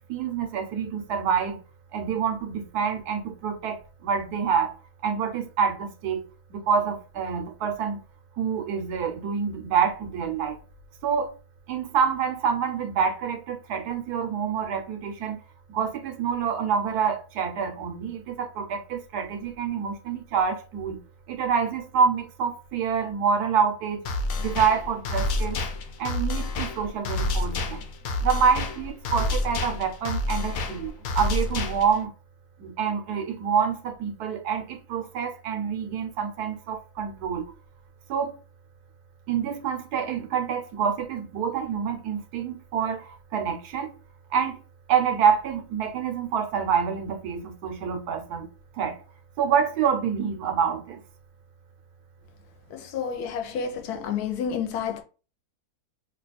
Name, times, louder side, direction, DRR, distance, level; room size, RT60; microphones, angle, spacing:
voice 1, 0.1-1.6 1.9-4.7 5.0-6.3 6.5-8.0 8.4-10.6 11.0-11.3 11.7-15.4 15.7-21.0 21.3-24.0 24.4-25.6 26.0-27.8 28.2-32.1 32.6-37.4 38.1-38.3 39.3-43.9 44.3-44.6 44.9-48.5 48.7-49.0 49.4-51.0, right 7 dB, 85° right, 1.3 m, -27 dB
sound 1, 24.1-32.0, left 2 dB, 65° left, 1.0 m, -29 dB
voice 2, 52.7-55.0, left 7 dB, 85° left, 1.2 m, -30 dB
3.0 x 2.3 x 4.0 m
omnidirectional pair, 1.6 m